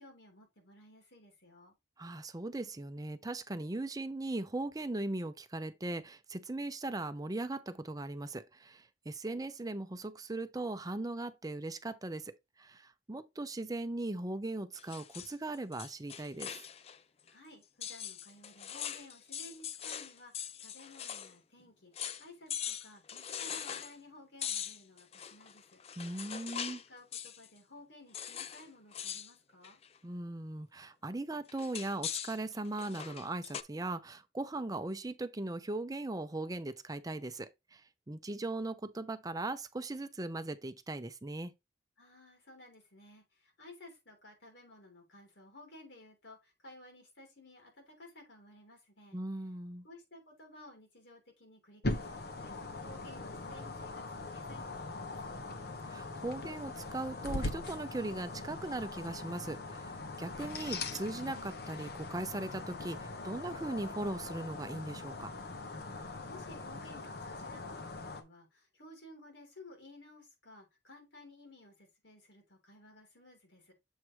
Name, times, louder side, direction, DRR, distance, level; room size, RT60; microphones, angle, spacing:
voice 1, 0.0-1.7 17.3-25.8 26.6-29.8 42.0-49.2 49.8-55.7 65.9-73.7, left 1 dB, 75° left, 3.1 m, -56 dB
voice 2, 2.0-16.6 26.0-26.8 30.0-41.5 49.1-49.8 55.9-59.9 60.2-65.3, right 2 dB, 20° right, 0.6 m, -39 dB
sound 1, 14.8-17.0 17.3-17.4 17.8-21.3 21.6-21.7 21.9-22.2 22.5-23.9 24.4-26.9 27.1-27.5 28.1-28.7 28.9-29.3 29.6-30.0 31.5-33.6, left 9 dB, 35° left, 0.4 m, -41 dB
sound 2, 51.8-68.2, left 2 dB, 60° left, 1.0 m, -41 dB
7.3 x 3.1 x 4.6 m
head